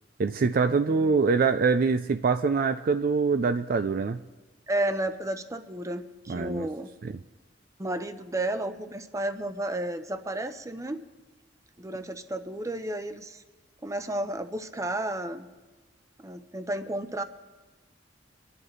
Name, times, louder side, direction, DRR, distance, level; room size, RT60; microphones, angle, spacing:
voice 1, 0.2-4.2 6.3-6.7 7.0-7.1, right 4 dB, 50° right, 10 dB, 0.4 m, -24 dB
voice 2, 4.7-6.9 7.8-11.0 11.8-13.4 13.8-15.5 16.2-17.2, right 1 dB, 15° right, 9 dB, 0.7 m, -32 dB
25.0 x 11.0 x 3.2 m, 1.2 s
head